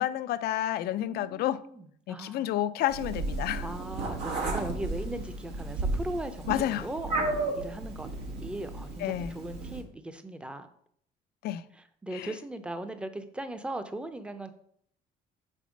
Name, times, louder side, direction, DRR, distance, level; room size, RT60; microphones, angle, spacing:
voice 1, 0.0-1.6 2.1-3.7 6.5-6.9 9.0-9.3 11.4-11.7 12.1-12.3, left 13 dB, 70° left, 0.4 m, -30 dB
voice 2, 1.0-2.5 3.6-8.1 8.4-10.7 12.0-14.5, right 1 dB, 5° right, 0.6 m, -38 dB
Meow, 2.9-9.8, right 2 dB, 85° right, 1.4 m, -33 dB
5.4 x 4.1 x 5.0 m
cardioid pair, 110°, 17 cm